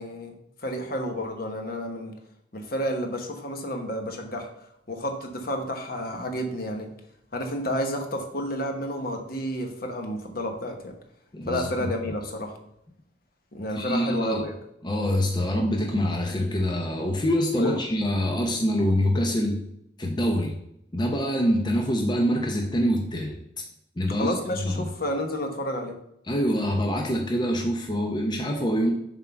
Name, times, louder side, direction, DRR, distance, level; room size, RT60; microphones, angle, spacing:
voice 1, 0.0-2.2 2.5-6.9 7.3-10.9 11.5-12.6 13.5-14.5 17.6-17.8 24.1-26.0, equal, 55° left, 4 dB, 1.2 m, -31 dB
voice 2, 11.3-11.7 13.8-14.4 14.8-19.6 20.0-20.6 20.9-23.3 24.0-24.3 24.7-24.9 26.3-28.9, equal, 25° left, 1 dB, 0.7 m, -25 dB
7.3 x 3.7 x 5.8 m, 0.77 s
head